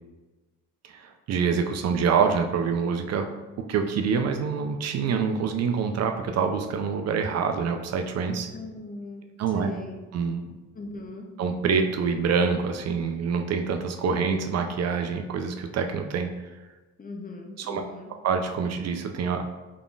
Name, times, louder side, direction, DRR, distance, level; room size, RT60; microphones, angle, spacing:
voice 1, 0.9-3.3 3.6-8.5 9.4-9.7 10.1-10.5 11.4-16.3 17.6-17.8 18.2-19.4, right 6 dB, 60° right, 5 dB, 0.4 m, -26 dB
voice 2, 8.5-10.0 10.7-11.3 17.0-18.1, left 2 dB, 30° left, 2 dB, 0.6 m, -39 dB
3.7 x 3.7 x 2.3 m, 1.2 s
cardioid pair, 90°, 30 cm